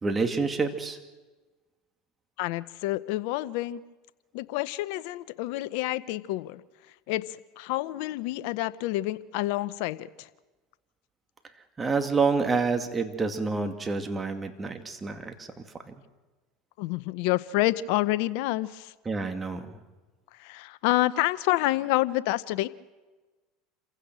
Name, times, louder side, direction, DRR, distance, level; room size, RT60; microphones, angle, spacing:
voice 1, 0.0-1.0 11.8-15.5 15.9-16.0 19.1-19.8, right 4 dB, 20° right, 6 dB, 2.4 m, -28 dB
voice 2, 2.4-3.8 4.3-6.6 7.1-10.3 16.8-18.9 20.4-22.7, left 17 dB, 70° left, 16 dB, 0.7 m, -28 dB
27.5 x 16.0 x 6.2 m, 1.2 s
hypercardioid pair, 90°, 0 cm